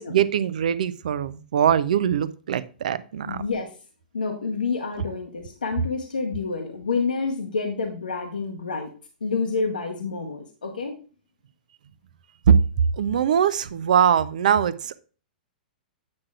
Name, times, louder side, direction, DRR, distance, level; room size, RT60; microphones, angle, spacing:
voice 1, 0.0-3.4 12.5-12.6 13.0-15.0, right 8 dB, 60° right, 16 dB, 0.5 m, -22 dB
voice 2, 3.3-3.7 4.1-8.9 9.2-11.0, left 4 dB, 75° left, 3 dB, 0.9 m, -28 dB
8.6 x 6.0 x 2.3 m, 0.38 s
figure-of-eight pair, 105°, 5 cm